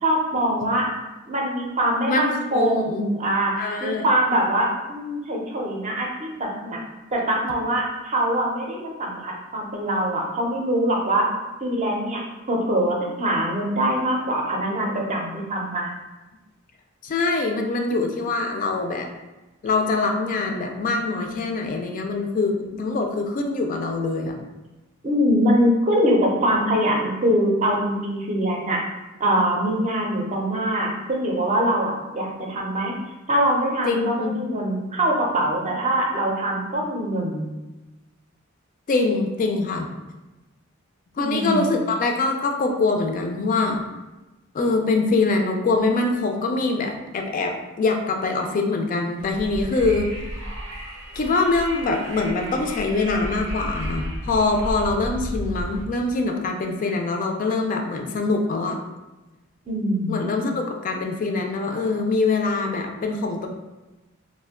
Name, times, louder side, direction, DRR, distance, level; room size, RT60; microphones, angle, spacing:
voice 1, 0.0-0.9 1.3-3.5 3.8-6.8 7.1-11.3 11.6-12.2 12.5-15.9 25.0-28.8 29.2-32.9 33.3-37.5 41.2-41.8 59.7-60.2, right 1 dB, 35° right, -1 dB, 0.5 m, -23 dB
voice 2, 2.1-3.0 3.6-4.1 17.0-19.1 19.6-24.4 33.8-34.4 38.9-39.9 41.2-43.8 44.5-50.1 51.2-58.8 60.1-63.5, left 3 dB, 40° left, 3 dB, 0.3 m, -24 dB
Wind, 49.2-55.8, equal, 80° right, 0.7 m, -33 dB
2.5 x 2.1 x 3.5 m, 1.1 s
head